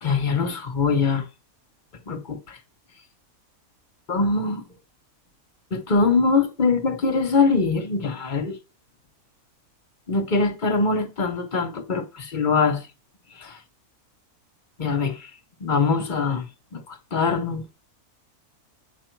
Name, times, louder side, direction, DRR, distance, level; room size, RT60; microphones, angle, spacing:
voice 1, 0.0-1.2 2.1-2.6 4.1-4.7 5.7-8.5 10.1-12.8 13.4-13.6 14.8-15.3 15.6-16.5 16.7-17.7, left 4 dB, 40° left, 0.9 m, -23 dB
8.0 x 5.2 x 4.5 m
omnidirectional pair, 1.6 m